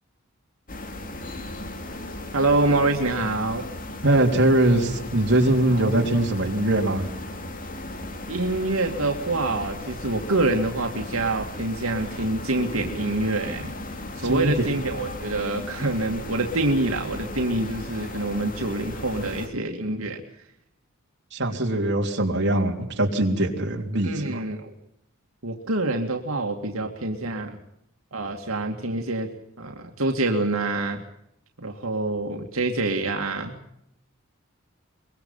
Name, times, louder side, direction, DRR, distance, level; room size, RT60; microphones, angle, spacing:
sound 1, 0.7-19.5, left 1 dB, 40° left, 2.5 m, -36 dB
voice 1, 2.3-3.7 5.7-5.9 8.3-13.7 14.2-20.2 24.0-24.7 25.4-27.6 28.1-29.3 29.6-31.0 31.6-33.6, right 2 dB, 85° right, 2 dB, 2.4 m, -26 dB
voice 2, 4.0-7.1 14.2-14.7 21.3-24.4, right 1 dB, 55° right, 1 dB, 3.5 m, -22 dB
24.0 x 22.0 x 5.7 m, 0.76 s
head